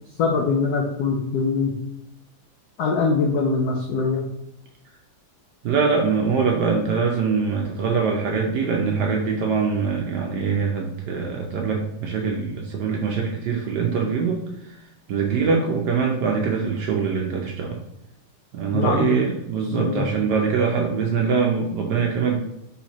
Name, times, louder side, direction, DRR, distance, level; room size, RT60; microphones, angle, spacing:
voice 1, 0.2-1.7 2.8-4.3 18.7-19.1 19.7-20.1, left 4 dB, 85° left, 1 dB, 0.8 m, -22 dB
voice 2, 5.6-14.8 15.1-17.8 18.5-22.4, right 5 dB, 70° right, 0 dB, 1.0 m, -23 dB
4.3 x 3.8 x 2.9 m, 0.85 s
omnidirectional pair, 2.3 m